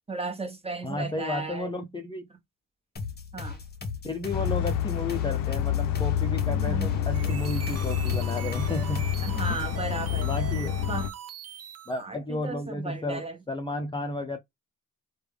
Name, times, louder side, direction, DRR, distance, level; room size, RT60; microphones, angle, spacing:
voice 1, 0.1-1.8 3.3-3.6 6.5-6.9 9.2-10.3 10.9-11.1 12.0-13.4, right 3 dB, 20° right, 1.2 m, -35 dB
voice 2, 0.8-2.3 4.0-9.1 10.1-10.8 11.9-14.4, left 2 dB, 15° left, 0.5 m, -33 dB
sound 1, 3.0-9.8, left 4 dB, 30° left, 0.9 m, -38 dB
sound 2, 4.3-11.1, left 9 dB, 90° left, 0.5 m, -28 dB
sound 3, 7.0-12.0, right 9 dB, 50° right, 0.6 m, -41 dB
3.3 x 2.3 x 3.2 m
cardioid pair, 90°, 32 cm